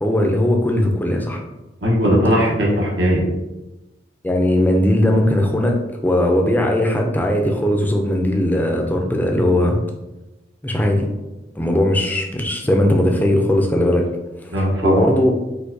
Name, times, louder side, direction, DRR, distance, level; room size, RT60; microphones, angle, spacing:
voice 1, 0.0-1.4 4.2-9.8 10.6-11.1 11.6-14.1 14.4-15.4, left 1 dB, 10° left, 2 dB, 0.3 m, -18 dB
voice 2, 1.8-3.2 14.5-15.1, equal, 85° right, -3 dB, 1.0 m, -18 dB
4.6 x 2.2 x 2.6 m, 1.0 s
head